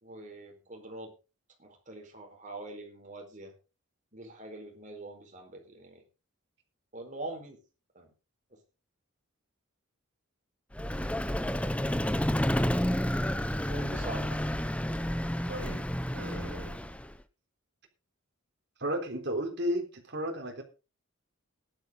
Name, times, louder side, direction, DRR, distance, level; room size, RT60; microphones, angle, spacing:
voice 1, 0.0-1.1 1.6-3.5 4.1-6.0 6.9-7.6 7.9-8.1 8.5-8.6 13.7-14.4, right 2 dB, 35° right, 2 dB, 4.4 m, -44 dB
Vehicle, 10.7-17.2, equal, 5° left, 0.7 m, -30 dB
voice 2, 15.5-15.8 16.1-16.8 18.8-20.6, equal, 55° right, 3 dB, 3.7 m, -34 dB
16.0 x 11.5 x 3.8 m, 0.31 s
head